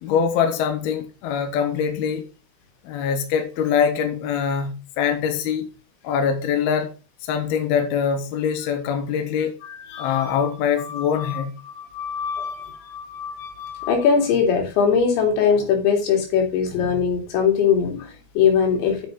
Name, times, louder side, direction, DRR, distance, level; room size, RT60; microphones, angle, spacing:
voice 1, 0.0-2.2 2.8-5.7 6.0-7.0 7.2-9.6 10.0-11.5, left 7 dB, 70° left, 3.0 m, -23 dB
voice 2, 9.6-10.5 10.8-19.1, left 6 dB, 85° left, 4.7 m, -22 dB
8.3 x 6.3 x 5.2 m
omnidirectional pair, 5.1 m